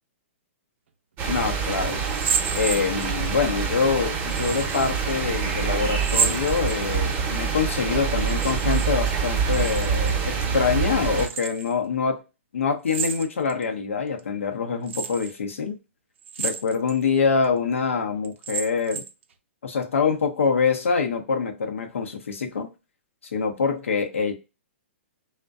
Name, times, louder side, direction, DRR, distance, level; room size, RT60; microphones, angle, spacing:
voice 1, 1.2-2.0 2.5-12.2 12.5-15.8 16.4-19.0 19.6-22.7 23.3-24.3, left 5 dB, 85° left, 0.6 m, -25 dB
sound 1, 1.2-11.3, right 6 dB, 25° right, 0.6 m, -26 dB
sound 2, 2.1-3.3 4.3-4.9 6.0-7.2 8.2-8.9 9.2-10.2 11.1-11.7 12.9-13.6 14.2-14.3 14.9-15.3 16.2-17.0 17.4-17.5 18.2-19.2, right 7 dB, 70° right, 0.4 m, -30 dB
2.5 x 2.1 x 2.3 m
hypercardioid pair, 135°, 7 cm